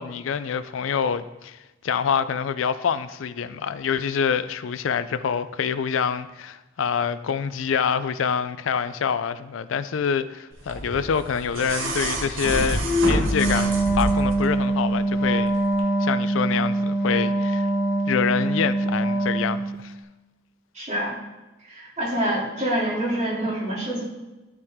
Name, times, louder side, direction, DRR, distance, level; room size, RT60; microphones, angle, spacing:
voice 1, 0.0-1.6 1.8-15.5 16.0-17.7 18.1-19.9, left 7 dB, 75° left, 0.4 m, -26 dB
sound 1, 10.7-14.5 15.7-15.8, equal, 75° right, 1.4 m, -26 dB
Wind instrument woodwind instrument, 13.3-19.8, right 2 dB, 50° left, 1.1 m, -23 dB
voice 2, 20.7-21.1 21.6-24.0, right 1 dB, 35° right, 2.8 m, -26 dB
13.5 x 4.9 x 3.6 m
head